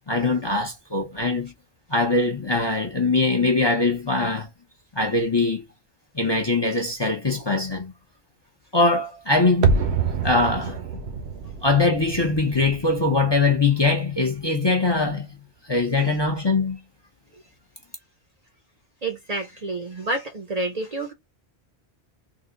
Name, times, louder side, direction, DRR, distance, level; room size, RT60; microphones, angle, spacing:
voice 1, 0.1-1.5 1.9-4.5 4.9-5.6 6.1-7.9 8.7-9.8 10.2-10.8 11.6-15.3 15.6-16.8, left 3 dB, 30° left, 0.6 m, -22 dB
sound 1, 9.6-14.6 14.8-14.9, right 5 dB, 80° right, 1.0 m, -27 dB
voice 2, 19.0-21.1, right 2 dB, 45° right, 0.7 m, -29 dB
3.7 x 2.3 x 3.7 m
omnidirectional pair, 1.1 m